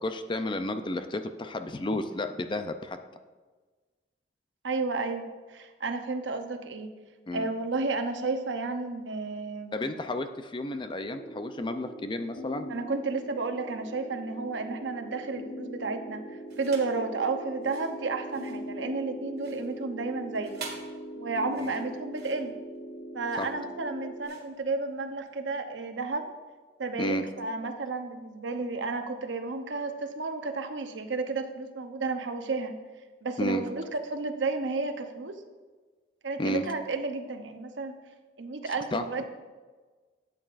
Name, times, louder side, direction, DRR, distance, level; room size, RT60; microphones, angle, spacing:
voice 1, 0.0-3.0 7.3-7.5 9.7-12.7 21.6-21.7 23.4-23.5 27.0-27.2 33.4-33.6 36.4-36.7 38.9-39.0, left 1 dB, 25° left, 8 dB, 0.5 m, -32 dB
voice 2, 4.6-5.2 5.5-6.9 7.3-9.9 12.7-16.2 16.6-20.6 21.2-22.5 23.1-26.3 26.8-32.7 33.2-35.4 36.2-37.9 38.4-39.2, right 3 dB, 85° right, 6 dB, 0.8 m, -32 dB
sound 1, 11.0-24.3, equal, 80° left, 1.1 m, -41 dB
sound 2, 16.5-17.0 17.5-25.4, right 5 dB, 60° right, 1.7 m, -48 dB
12.5 x 8.3 x 2.5 m, 1.4 s
head